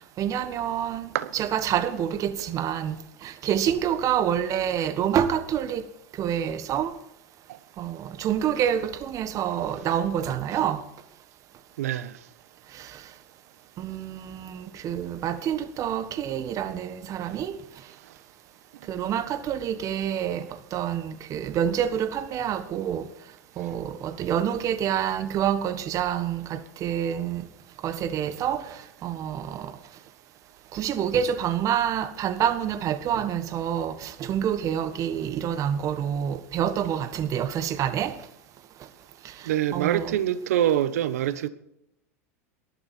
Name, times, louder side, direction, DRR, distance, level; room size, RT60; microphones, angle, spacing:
voice 1, 0.2-3.0 3.2-5.9 6.2-7.0 7.8-10.8 12.7-13.0 13.8-17.6 18.9-23.1 23.6-27.5 27.8-29.7 30.7-38.2 39.2-40.2, right 9 dB, 40° right, 1.4 m, -27 dB
voice 2, 11.8-12.1 39.4-41.5, right 11 dB, 75° right, 1.1 m, -25 dB
18.5 x 13.0 x 4.5 m
hypercardioid pair, 95°, 8 cm